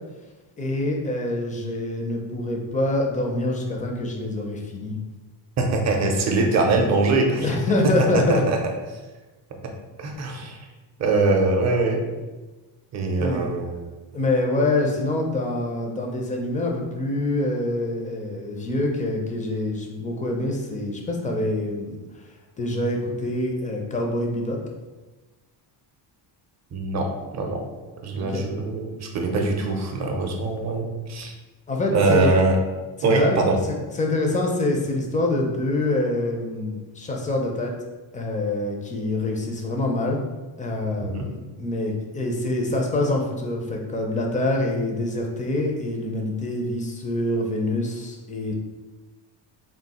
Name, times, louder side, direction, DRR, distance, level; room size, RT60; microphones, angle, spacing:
voice 1, 0.6-4.9 7.4-8.4 13.2-13.5 14.1-22.0 22.6-24.6 28.2-28.4 31.7-32.3 33.1-33.4 33.7-37.7 38.1-40.2 40.6-48.5, left 2 dB, 20° left, 1 dB, 0.4 m, -25 dB
voice 2, 5.6-7.6 8.3-8.6 10.0-10.6 11.0-12.0 12.9-13.8 26.7-27.6 28.0-31.3 31.9-32.6 33.0-33.6 41.1-41.3, right 3 dB, 35° right, 2 dB, 0.6 m, -22 dB
3.6 x 2.3 x 4.1 m, 1.2 s
cardioid pair, 160°, 46 cm